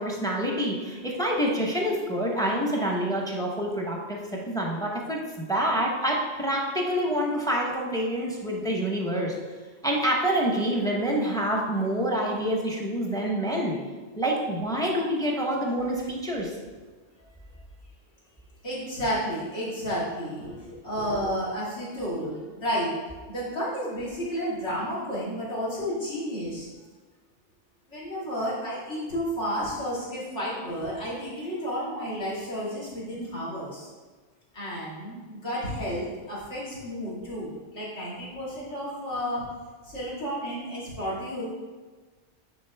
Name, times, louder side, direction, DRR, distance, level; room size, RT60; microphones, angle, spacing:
voice 1, 0.0-9.3 9.8-13.8 14.2-16.5, right 1 dB, 5° left, -1 dB, 0.8 m, -27 dB
voice 2, 18.6-22.9 23.3-26.7 27.9-33.9 34.5-39.5 39.8-41.5, equal, 70° left, -8 dB, 2.5 m, -31 dB
9.4 x 3.9 x 3.4 m, 1.4 s
omnidirectional pair, 1.3 m